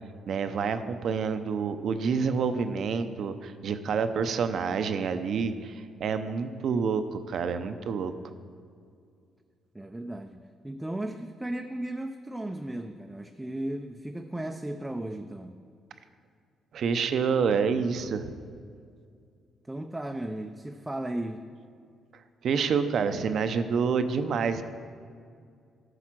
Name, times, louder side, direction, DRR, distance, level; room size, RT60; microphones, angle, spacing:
voice 1, 0.3-8.1 16.7-18.3 22.4-24.6, right 6 dB, 60° right, 10 dB, 0.6 m, -28 dB
voice 2, 9.7-15.6 19.7-21.4, right 1 dB, 10° right, 4 dB, 0.5 m, -35 dB
13.0 x 4.9 x 6.1 m, 2.2 s
cardioid pair, 90°, 0 cm